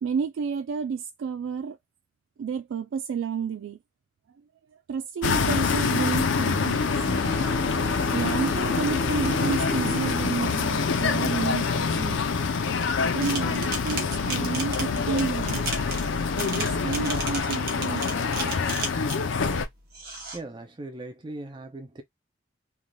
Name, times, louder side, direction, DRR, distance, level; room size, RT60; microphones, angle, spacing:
voice 1, 0.0-1.8 2.4-3.8 4.9-7.0 8.1-12.2 13.1-15.6 16.3-18.8, right 6 dB, 75° right, 0.3 m, -31 dB
sound 1, 5.2-19.6, left 5 dB, 80° left, 0.5 m, -26 dB
Bowed string instrument, 7.0-12.1, right 1 dB, 10° right, 0.9 m, -36 dB
sound 2, 13.2-19.3 19.9-20.4, right 3 dB, 50° right, 1.0 m, -34 dB
voice 2, 20.3-22.0, right 2 dB, 25° right, 0.5 m, -39 dB
3.3 x 2.6 x 2.2 m
head